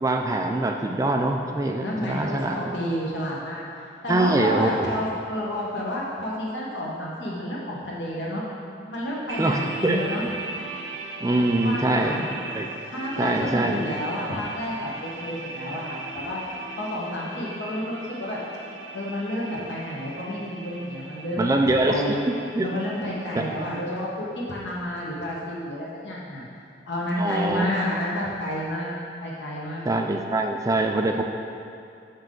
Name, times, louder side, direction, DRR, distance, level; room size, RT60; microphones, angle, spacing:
voice 1, 0.0-2.6 4.1-4.9 9.4-10.0 11.2-12.7 13.2-13.8 21.4-22.2 22.5-22.7 23.4-23.5 27.2-27.7 29.8-31.2, right 2 dB, 20° right, 2 dB, 0.3 m, -24 dB
voice 2, 1.8-3.6 4.0-8.4 8.9-10.3 11.6-12.2 12.9-16.4 16.8-18.4 18.9-22.2 22.6-26.4 26.9-28.9 29.2-29.9, left 1 dB, 85° left, -5 dB, 1.2 m, -30 dB
sound 1, 9.3-23.8, right 2 dB, 90° right, 0.6 m, -38 dB
6.9 x 5.6 x 3.8 m, 2.6 s
head